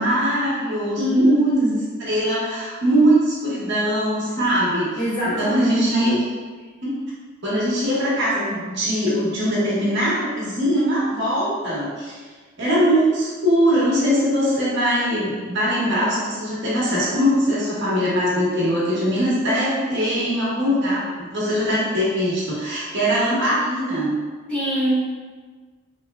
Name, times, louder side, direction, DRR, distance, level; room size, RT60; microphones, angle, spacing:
voice 1, 0.0-1.7 2.0-6.2 6.8-6.9 7.4-12.2 12.6-24.2, equal, 60° right, -8 dB, 1.1 m, -21 dB
voice 2, 1.0-1.8 5.0-5.8 24.5-25.0, right 1 dB, 5° left, -12 dB, 1.3 m, -21 dB
3.3 x 3.1 x 2.3 m, 1.4 s
head